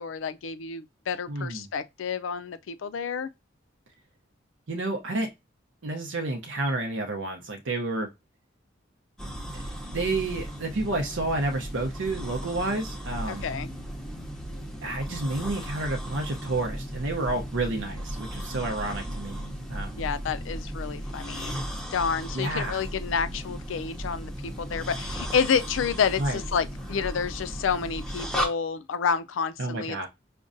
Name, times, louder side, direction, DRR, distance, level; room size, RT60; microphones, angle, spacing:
voice 1, 0.0-3.3 13.3-13.7 20.0-21.6 21.9-30.1, left 6 dB, 90° left, 0.4 m, -29 dB
voice 2, 1.3-1.7 4.7-5.3 5.8-8.1 9.9-13.5 14.8-19.4 19.7-20.0 22.3-22.8 26.2-26.4 29.6-30.1, right 2 dB, 80° right, 0.6 m, -30 dB
sound 1, 9.2-28.5, equal, 5° left, 0.6 m, -36 dB
5.0 x 2.2 x 2.5 m
head